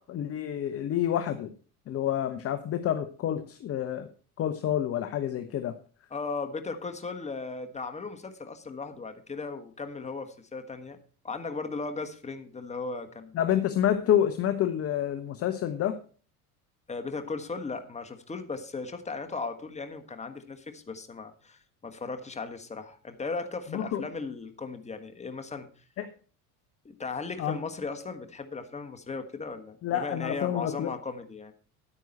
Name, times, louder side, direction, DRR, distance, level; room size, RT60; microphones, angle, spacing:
voice 1, 0.1-1.5 1.9-4.1 4.4-5.8 13.3-16.0 23.7-24.0 26.0-26.1 27.4-27.6 29.8-30.9, left 10 dB, 30° left, 9 dB, 0.8 m, -28 dB
voice 2, 6.1-11.0 11.2-13.4 16.9-25.7 26.8-31.5, left 4 dB, 15° left, 7 dB, 1.4 m, -37 dB
9.9 x 9.1 x 4.3 m, 0.40 s
figure-of-eight pair, 60°, 46 cm